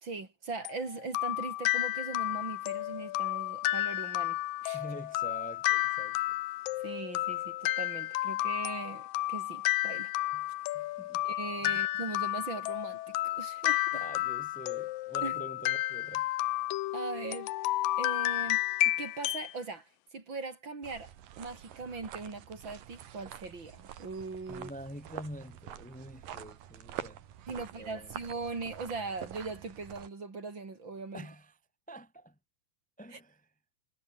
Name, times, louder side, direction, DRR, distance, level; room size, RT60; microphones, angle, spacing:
voice 1, 0.0-4.8 6.8-10.1 11.2-14.0 15.2-15.4 16.9-17.5 18.0-18.6 19.0-21.1 21.4-24.7 27.5-31.3 33.1-33.2, right 4 dB, 30° right, 4.2 m, -40 dB
sound 1, 0.7-19.5, left 17 dB, 75° left, 2.3 m, -32 dB
voice 2, 4.7-6.3 10.3-10.5 10.7-11.2 11.6-11.8 13.9-16.3 24.5-27.2 27.5-28.2 31.1-31.6 31.9-32.3 33.0-33.4, equal, 10° left, 0.5 m, -46 dB
sound 2, 20.8-30.1, right 10 dB, 65° right, 3.2 m, -46 dB
omnidirectional pair, 4.5 m